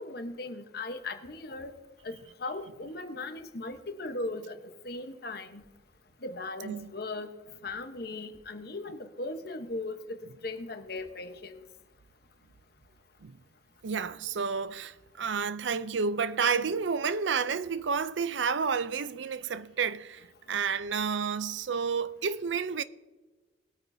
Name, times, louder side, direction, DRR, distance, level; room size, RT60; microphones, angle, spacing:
voice 1, 0.0-1.7 2.0-2.1 2.4-4.6 4.8-5.6 6.2-7.3 7.6-11.6, left 2 dB, 55° left, 1.0 m, -38 dB
voice 2, 13.8-22.8, right 5 dB, 75° right, 0.5 m, -30 dB
19.5 x 9.0 x 2.7 m
head